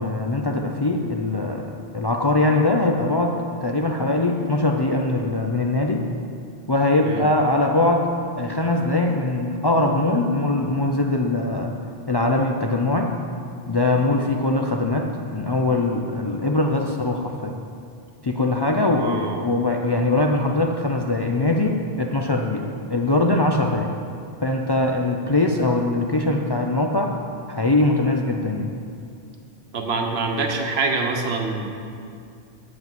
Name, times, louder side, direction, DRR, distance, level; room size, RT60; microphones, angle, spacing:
voice 1, 0.0-6.1 6.7-8.1 8.4-11.7 12.1-13.2 13.7-17.6 18.2-23.9 24.4-27.2 27.5-28.7, left 2 dB, 35° left, 1 dB, 0.4 m, -22 dB
voice 2, 18.9-19.5 29.7-31.6, right 3 dB, 80° right, 3 dB, 1.2 m, -25 dB
8.2 x 5.3 x 7.6 m, 2.3 s
omnidirectional pair, 1.0 m